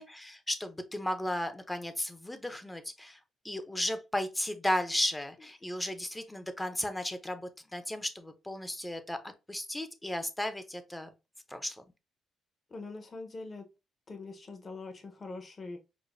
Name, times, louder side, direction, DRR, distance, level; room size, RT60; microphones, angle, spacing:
voice 1, 0.0-3.2 3.4-9.2 9.5-11.1 11.5-11.8, left 1 dB, 10° left, 0.5 m, -34 dB
voice 2, 12.7-13.7 14.1-15.8, left 3 dB, 35° left, 0.9 m, -43 dB
4.9 x 2.1 x 2.5 m
cardioid pair, 90°, 0 cm